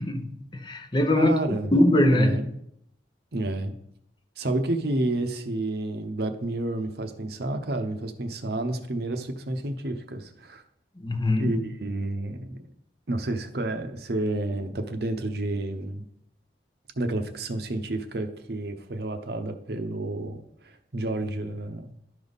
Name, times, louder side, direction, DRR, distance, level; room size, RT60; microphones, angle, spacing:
voice 1, 0.0-1.4 1.7-2.4 11.0-11.5, left 1 dB, 25° left, 0.7 m, -22 dB
voice 2, 1.1-1.7 2.1-2.5 3.3-3.7 4.4-10.6 11.4-12.7 13.1-16.0 17.0-21.9, right 2 dB, 60° right, 0.8 m, -30 dB
12.0 x 5.3 x 4.0 m
head